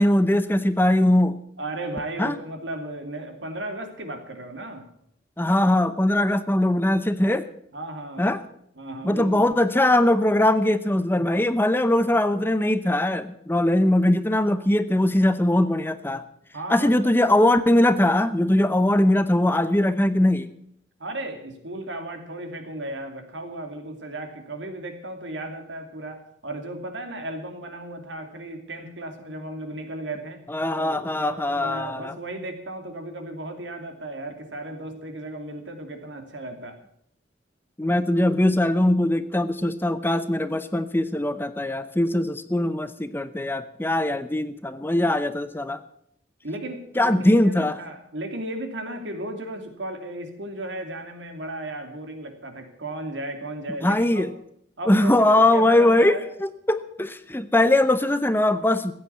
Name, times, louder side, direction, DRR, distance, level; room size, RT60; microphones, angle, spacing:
voice 1, 0.0-1.4 2.2-2.4 5.4-7.5 8.2-8.4 9.0-16.2 16.7-20.5 30.5-32.1 37.8-45.8 47.0-47.8 53.8-54.3 54.9-58.9, left 1 dB, 10° left, 12 dB, 0.7 m, -21 dB
voice 2, 1.6-4.9 7.7-8.3 8.7-9.6 16.5-16.9 21.0-30.5 30.7-36.8 46.4-54.3 54.8-56.2, right 1 dB, 85° right, 5 dB, 2.7 m, -35 dB
15.0 x 9.2 x 8.2 m, 0.70 s
head